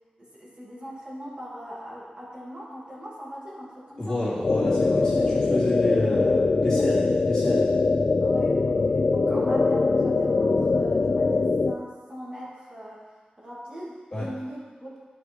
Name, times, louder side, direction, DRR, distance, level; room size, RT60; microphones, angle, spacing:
voice 1, 0.2-4.2 5.0-5.4 5.8-5.9 6.3-6.4 6.7-6.9 8.2-13.0 13.4-15.0, equal, 35° right, -7 dB, 2.9 m, -40 dB
voice 2, 4.0-7.7 14.1-14.3, left 1 dB, 25° left, -8 dB, 3.0 m, -28 dB
sound 1, 4.4-11.7, left 3 dB, 50° left, 0.5 m, -22 dB
11.0 x 5.1 x 4.8 m, 1.4 s
wide cardioid pair, 70°, 3 cm